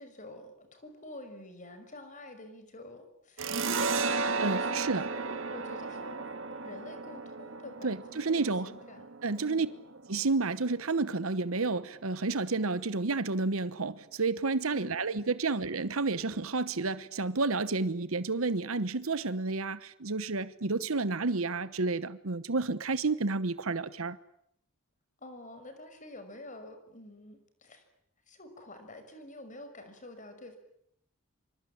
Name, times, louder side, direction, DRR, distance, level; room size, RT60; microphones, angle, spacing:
voice 1, 0.0-3.5 4.6-9.1 9.4-9.7 14.7-14.9 25.2-27.8 28.3-30.6, left 1 dB, 35° left, 5.8 m, -48 dB
sound 1, 3.4-10.6, right 4 dB, 65° right, 1.8 m, -34 dB
voice 2, 4.4-5.1 7.8-8.7 9.2-9.7 10.1-24.2, right 3 dB, 80° right, 1.1 m, -30 dB
25.5 x 25.5 x 8.7 m
head